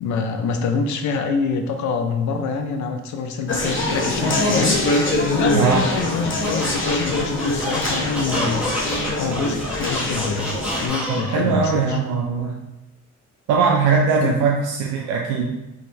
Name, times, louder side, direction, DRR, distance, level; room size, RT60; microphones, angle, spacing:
voice 1, 0.0-4.8 5.3-8.7 9.2-10.5 10.8-12.0 14.2-14.4, left 5 dB, 70° left, 6 dB, 0.5 m, -25 dB
Conversation, 3.5-10.9, left 2 dB, 40° left, 0.9 m, -23 dB
voice 2, 5.5-5.9 11.1-12.6 13.5-15.5, right 5 dB, 90° right, -1 dB, 0.5 m, -20 dB
Squeak, 6.4-11.5, equal, 5° right, 1.1 m, -29 dB
3.6 x 2.6 x 3.0 m, 0.96 s
cardioid pair, 90°, 30 cm